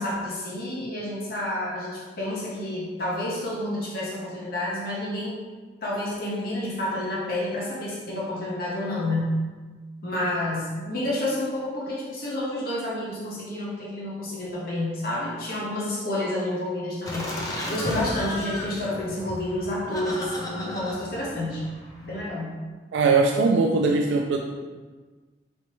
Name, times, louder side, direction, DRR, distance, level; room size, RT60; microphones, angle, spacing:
voice 1, 0.0-5.4 5.8-9.4 10.0-21.7 22.0-22.6, left 1 dB, 55° left, -5 dB, 0.8 m, -29 dB
Laughter, 17.1-22.2, left 1 dB, 20° left, 0.5 m, -34 dB
voice 2, 22.9-24.4, right 4 dB, 85° right, 2 dB, 0.3 m, -20 dB
4.1 x 3.2 x 2.9 m, 1.4 s
head